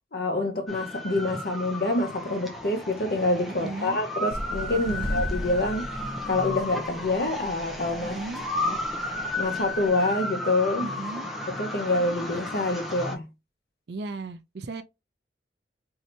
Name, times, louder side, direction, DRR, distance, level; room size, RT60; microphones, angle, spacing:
voice 1, 0.1-5.9 6.3-8.2 8.6-8.8 9.4-10.9 11.5-13.3, left 2 dB, 60° left, 0.8 m, -27 dB
sound 1, 0.7-13.2, left 2 dB, ahead, 0.5 m, -33 dB
voice 2, 3.5-4.0 4.7-5.2 8.0-8.4 10.8-11.3 13.9-14.8, right 3 dB, 70° right, 0.5 m, -36 dB
sound 2, 4.3-9.9, equal, 30° left, 0.9 m, -37 dB
2.8 x 2.7 x 3.2 m
head